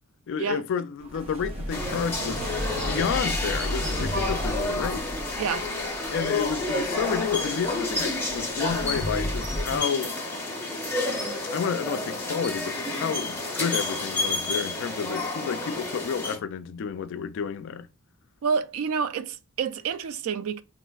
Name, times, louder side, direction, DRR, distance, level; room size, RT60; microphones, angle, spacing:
voice 1, 0.3-2.4 2.9-5.1 6.1-10.2 11.5-17.9, left 6 dB, 60° left, 0.3 m, -30 dB
sound 1, 1.0-9.8, equal, 30° right, 0.7 m, -34 dB
sound 2, 1.7-16.4, left 2 dB, 10° left, 0.7 m, -30 dB
voice 2, 18.4-20.6, right 6 dB, 70° right, 0.3 m, -28 dB
4.1 x 2.5 x 2.3 m
head